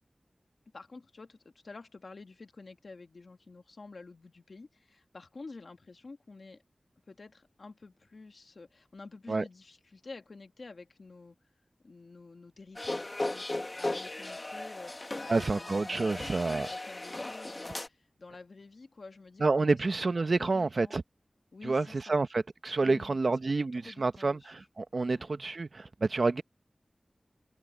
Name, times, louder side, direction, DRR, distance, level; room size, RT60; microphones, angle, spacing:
voice 1, 0.7-6.6 7.1-11.4 11.8-19.8 20.3-21.0 21.5-22.2 22.8-24.5 25.1-25.3, left 3 dB, 75° left, 1.6 m, -49 dB
sound 1, 12.8-17.9, left 2 dB, 40° left, 2.4 m, -37 dB
voice 2, 15.3-16.7 19.4-21.0 21.6-26.4, right 3 dB, 70° right, 1.1 m, -29 dB
wide cardioid pair, 50°, 0 cm